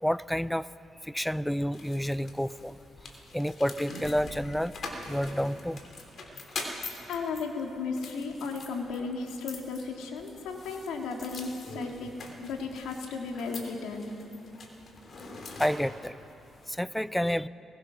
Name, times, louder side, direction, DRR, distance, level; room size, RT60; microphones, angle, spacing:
voice 1, 0.0-0.7 1.0-2.8 3.3-4.7 5.1-5.8 15.6-16.1 16.7-17.5, equal, 5° left, 17 dB, 0.5 m, -29 dB
sound 1, 1.7-16.7, left 3 dB, 50° left, 3.4 m, -44 dB
voice 2, 7.1-12.1 12.4-14.1, left 4 dB, 85° left, 2 dB, 2.7 m, -35 dB
21.5 x 21.0 x 6.3 m, 3.0 s
cardioid pair, 90°, 0 cm